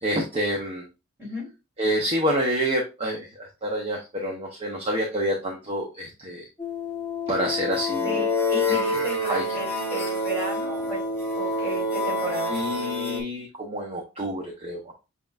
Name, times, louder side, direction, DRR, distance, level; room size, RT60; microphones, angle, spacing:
voice 1, 0.0-0.8 1.8-6.5 7.3-8.2 8.7-9.0 9.3-9.4 12.5-14.9, equal, 30° right, -1 dB, 0.9 m, -28 dB
sound 1, 6.6-13.2, left 2 dB, 10° left, 1.2 m, -27 dB
voice 2, 8.0-11.0 11.4-12.5, right 1 dB, 10° right, -4 dB, 3.1 m, -34 dB
7.5 x 2.9 x 2.4 m, 0.28 s
head